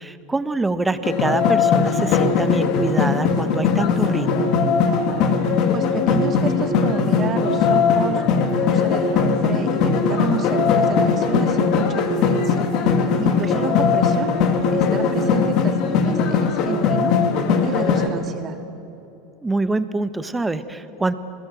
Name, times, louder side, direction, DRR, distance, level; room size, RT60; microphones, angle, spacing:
voice 1, 0.0-4.5 13.3-13.6 19.4-21.1, right 2 dB, 10° right, 12 dB, 1.4 m, -25 dB
sound 1, 1.0-18.1, left 5 dB, 55° left, 2.8 m, -19 dB
voice 2, 5.7-8.2 8.6-12.7 13.2-14.3 14.7-17.1 17.6-18.5, right 6 dB, 35° right, 6 dB, 2.8 m, -30 dB
28.5 x 20.0 x 7.8 m, 3.0 s
hypercardioid pair, 90°, 0 cm